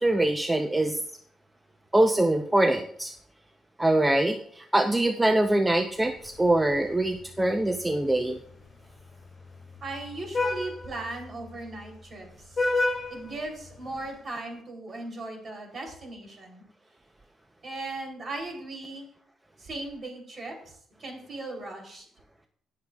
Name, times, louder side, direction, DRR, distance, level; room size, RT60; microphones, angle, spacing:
voice 1, 0.0-1.0 1.9-3.1 3.8-8.4, right 1 dB, 10° right, 5 dB, 0.6 m, -23 dB
Vehicle horn car horn honking, 6.0-14.2, left 2 dB, 30° left, 3.9 m, -34 dB
voice 2, 9.8-12.7 13.1-16.6 17.6-19.1 19.6-20.7 21.0-22.0, right 2 dB, 45° right, 1 dB, 3.2 m, -38 dB
18.0 x 6.6 x 2.4 m, 0.63 s
cardioid pair, 90°, 0 cm